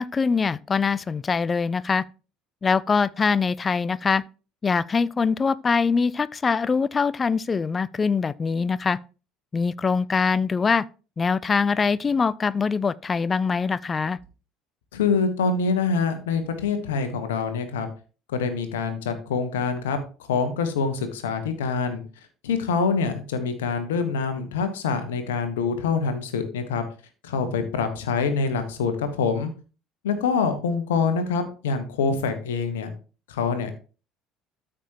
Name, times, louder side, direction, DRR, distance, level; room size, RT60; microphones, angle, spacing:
voice 1, 0.0-2.0 2.6-4.2 4.6-9.0 9.5-10.8 11.2-14.2, left 5 dB, 30° left, 0.4 m, -23 dB
voice 2, 14.9-17.9 18.3-20.0 20.3-22.0 22.4-26.8 27.2-29.5 30.0-32.9 33.3-33.7, left 5 dB, 75° left, 1.2 m, -25 dB
13.0 x 5.1 x 2.9 m
figure-of-eight pair, 60°, 0 cm